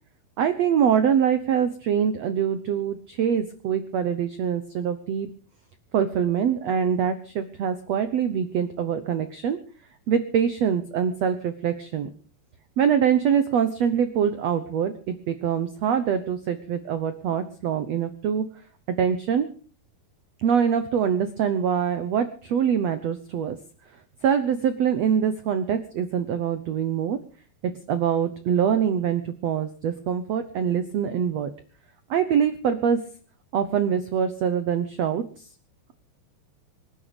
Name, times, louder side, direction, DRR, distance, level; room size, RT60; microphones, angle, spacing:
voice 1, 0.4-5.3 5.9-9.6 10.1-12.1 12.8-18.4 18.9-19.5 20.4-23.6 24.2-27.2 27.6-31.5 32.1-33.0 33.5-35.2, right 8 dB, 75° right, 11 dB, 1.5 m, -24 dB
25.5 x 11.0 x 5.1 m, 0.42 s
omnidirectional pair, 4.5 m